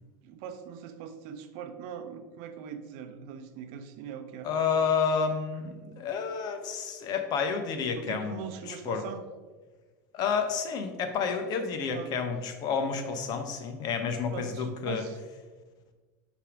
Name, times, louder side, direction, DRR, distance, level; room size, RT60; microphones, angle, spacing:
voice 1, 0.2-4.5 7.9-9.2 11.9-12.2 14.3-15.2, right 8 dB, 60° right, 8 dB, 0.7 m, -41 dB
voice 2, 4.4-9.0 10.1-15.0, left 6 dB, 45° left, 7 dB, 0.9 m, -30 dB
5.5 x 3.5 x 5.0 m, 1.3 s
hypercardioid pair, 105°, 10 cm